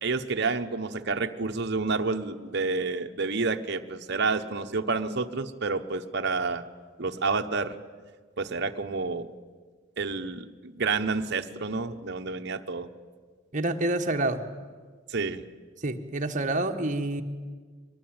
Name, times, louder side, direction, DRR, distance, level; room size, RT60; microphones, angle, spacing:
voice 1, 0.0-6.6 7.0-7.7 8.4-9.3 10.0-12.9 15.1-15.4, right 4 dB, 55° right, 6 dB, 1.1 m, -29 dB
voice 2, 13.5-14.4 15.8-17.2, right 2 dB, 40° right, 5 dB, 1.5 m, -28 dB
23.0 x 20.5 x 8.9 m, 1.5 s
head